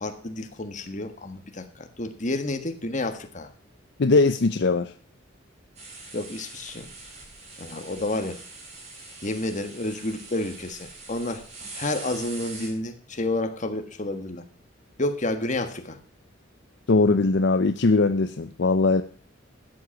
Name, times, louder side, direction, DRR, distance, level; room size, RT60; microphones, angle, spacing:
voice 1, 0.0-3.5 6.1-6.9 7.6-8.4 9.2-11.4 11.7-14.4 15.0-16.0, left 2 dB, 40° left, 8 dB, 1.5 m, -30 dB
voice 2, 4.0-4.9 16.9-19.0, left 3 dB, 60° left, 10 dB, 0.6 m, -20 dB
sound 1, 5.8-12.7, right 3 dB, 35° right, 4.2 m, -43 dB
13.0 x 7.9 x 5.9 m, 0.43 s
head